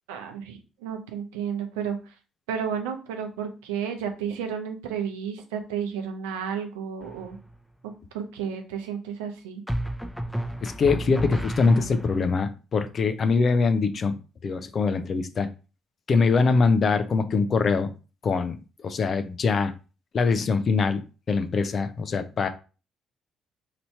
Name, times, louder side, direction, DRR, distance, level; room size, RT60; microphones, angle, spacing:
voice 1, 0.1-2.0 2.5-7.4 8.1-9.6, right 7 dB, 90° right, 5 dB, 0.6 m, -32 dB
sound 1, 7.0-7.5 9.7-12.3, right 1 dB, 5° left, 0.7 m, -31 dB
voice 2, 10.6-15.5 16.1-17.9 18.2-19.7 20.1-22.5, left 4 dB, 50° left, 10 dB, 0.5 m, -23 dB
3.0 x 2.7 x 4.4 m, 0.33 s
hypercardioid pair, 55°, 0 cm